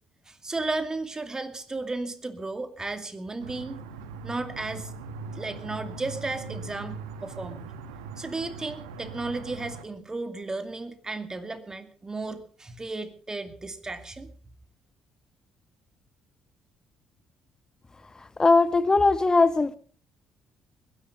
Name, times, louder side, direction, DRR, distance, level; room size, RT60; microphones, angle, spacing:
voice 1, 0.3-3.8 4.2-4.9 5.3-7.7 8.2-14.3, right 3 dB, 25° right, 2.4 m, -34 dB
sound 1, 3.4-9.8, right 4 dB, 80° right, 1.3 m, -40 dB
voice 2, 18.4-19.8, left 3 dB, 25° left, 1.4 m, -20 dB
21.0 x 11.0 x 5.3 m
hypercardioid pair, 50°, 3 cm